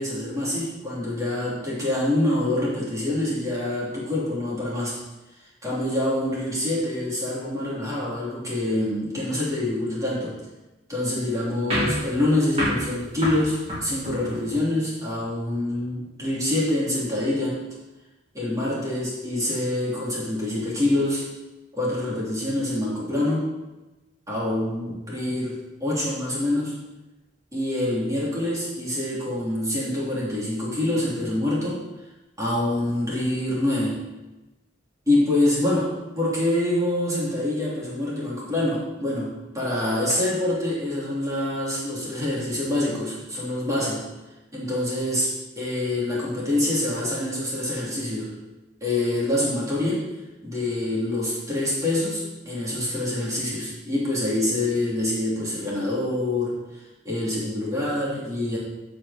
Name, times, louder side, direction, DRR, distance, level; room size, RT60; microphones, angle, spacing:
voice 1, 0.0-5.0 5.6-10.4 10.9-17.6 18.3-21.3 21.7-23.5 24.3-26.7 27.5-31.8 32.4-34.0 35.1-44.0 44.5-48.3 48.8-50.1 50.4-56.6 57.0-58.6, left 1 dB, 15° right, -7 dB, 3.2 m, -26 dB
sound 1, 11.7-14.6, equal, 35° right, 3.2 m, -29 dB
14.5 x 5.1 x 4.3 m, 1.1 s
head